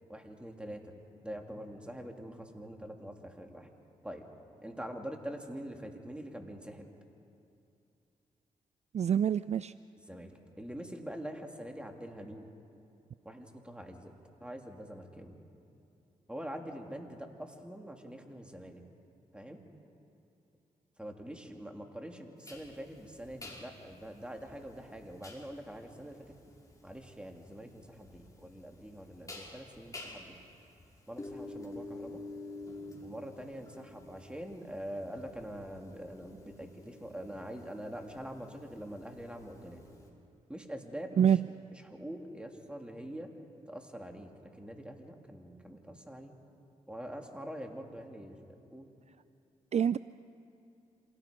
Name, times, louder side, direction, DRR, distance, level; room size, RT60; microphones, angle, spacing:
voice 1, 0.1-3.7 4.0-4.2 4.6-6.9 10.1-12.5 13.2-14.1 14.4-15.4 16.3-18.8 19.3-19.6 21.0-26.3 26.8-30.4 31.1-32.2 33.0-39.8 40.5-41.4 41.8-43.3 43.7-46.4 46.9-48.9, equal, 5° right, 3 dB, 3.0 m, -44 dB
voice 2, 8.9-9.7 41.2-41.4 49.7-50.0, right 8 dB, 50° right, 16 dB, 0.4 m, -26 dB
sound 1, 22.4-40.1, left 2 dB, 20° left, 5.5 m, -49 dB
27.5 x 18.0 x 5.3 m, 2.7 s
supercardioid pair, 45°, 15 cm